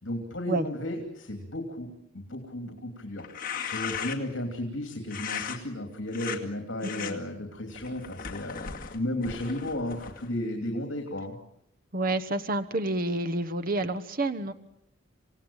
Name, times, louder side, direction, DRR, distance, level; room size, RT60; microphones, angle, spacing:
voice 1, 0.0-11.3, left 1 dB, 70° left, 4 dB, 3.0 m, -34 dB
sound 1, 3.2-4.4 5.1-5.6 6.1-6.4 6.8-7.1 7.7-10.3, left 7 dB, 45° left, 2.3 m, -37 dB
voice 2, 6.8-7.2 11.9-14.5, right 2 dB, 45° right, 8 dB, 1.1 m, -29 dB
27.5 x 17.5 x 8.8 m, 0.80 s
head